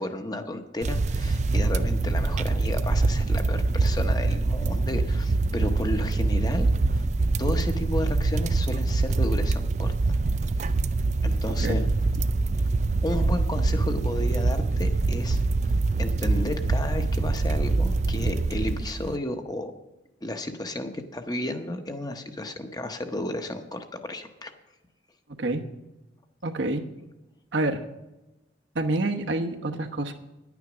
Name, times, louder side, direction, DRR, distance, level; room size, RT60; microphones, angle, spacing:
voice 1, 0.0-7.0 7.4-9.9 11.2-11.8 13.0-15.4 16.0-19.7 20.2-24.5, left 1 dB, 20° left, 6 dB, 0.8 m, -33 dB
sound 1, 0.8-19.1, right 3 dB, 35° right, 0.4 m, -24 dB
voice 2, 26.4-26.8 27.5-27.8 28.7-30.1, right 2 dB, 75° right, 5 dB, 1.0 m, -27 dB
10.5 x 9.3 x 6.1 m, 1.0 s
head